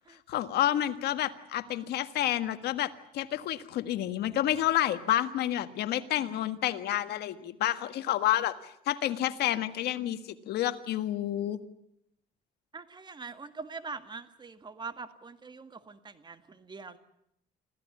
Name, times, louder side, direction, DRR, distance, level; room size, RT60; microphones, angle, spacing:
voice 1, 0.3-11.6, left 12 dB, 75° left, 10 dB, 1.6 m, -29 dB
voice 2, 12.7-17.0, right 4 dB, 25° right, 10 dB, 1.9 m, -43 dB
26.5 x 16.0 x 9.7 m, 0.77 s
cardioid pair, 110°, 17 cm